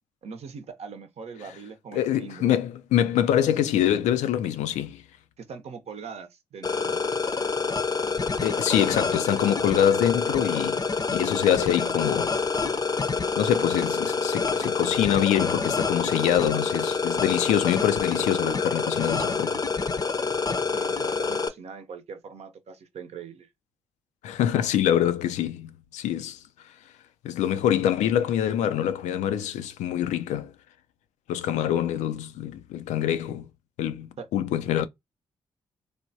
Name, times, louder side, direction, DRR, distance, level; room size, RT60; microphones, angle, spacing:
voice 1, 0.2-2.5 5.4-7.0 20.7-23.5 34.2-34.3, right 5 dB, 60° right, 0.7 m, -41 dB
voice 2, 1.9-5.0 8.4-10.8 11.1-12.4 13.4-19.6 24.2-26.4 27.2-30.5 31.3-33.5 33.8-34.9, left 10 dB, 75° left, 0.4 m, -25 dB
sound 1, 6.6-21.5, left 4 dB, 30° left, 0.6 m, -27 dB
3.2 x 2.2 x 2.7 m
hypercardioid pair, 40°, 12 cm